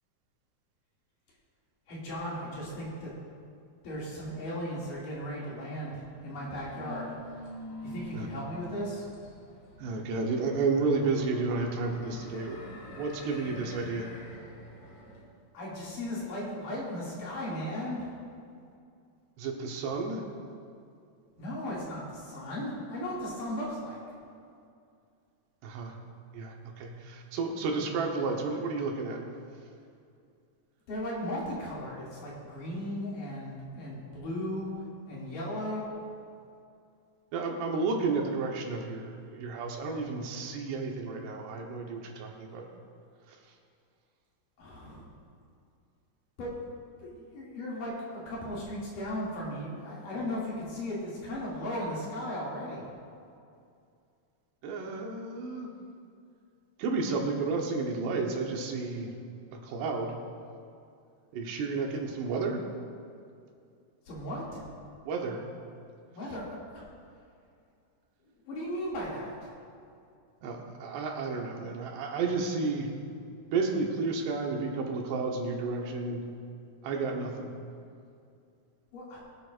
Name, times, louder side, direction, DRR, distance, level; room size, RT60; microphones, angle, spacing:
voice 1, 1.9-3.1 3.8-7.1 7.8-9.1 15.5-18.1 21.4-24.0 30.9-35.9 44.6-45.1 46.4-46.6 47.0-52.8 64.1-64.6 66.1-66.8 68.5-69.5 78.9-79.2, equal, 55° left, -7 dB, 3.7 m, -36 dB
sound 1, 5.9-15.2, left 1 dB, 90° left, 5.1 m, -46 dB
voice 2, 9.8-14.1 19.4-20.2 25.6-25.9 26.3-29.2 37.3-42.7 43.3-43.4 54.6-55.7 56.8-59.1 59.5-60.2 61.3-62.6 65.1-65.4 70.4-72.9 73.5-76.2 76.8-77.5, right 4 dB, 80° right, 1 dB, 3.2 m, -32 dB
23.0 x 8.5 x 2.5 m, 2.4 s
omnidirectional pair, 4.8 m